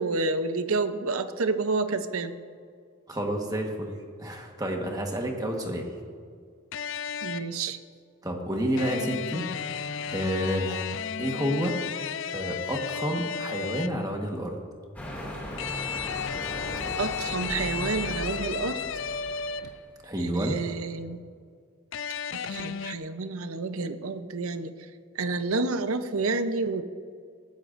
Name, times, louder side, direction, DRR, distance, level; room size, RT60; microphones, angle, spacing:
voice 1, 0.0-2.3 7.2-7.8 17.0-18.8 20.2-21.2 22.3-24.7 25.2-26.8, right 3 dB, 75° right, 10 dB, 0.7 m, -29 dB
voice 2, 3.1-3.9 4.2-5.9 8.2-9.4 10.1-11.7 12.3-14.5 20.0-20.6, equal, 15° right, 2 dB, 1.3 m, -29 dB
sound 1, 6.7-7.6 8.8-14.1 15.6-19.9 21.9-23.0, left 7 dB, 55° left, 0.4 m, -34 dB
sound 2, 14.9-19.9, equal, 5° left, 2.3 m, -37 dB
19.0 x 13.5 x 2.6 m, 2.1 s
head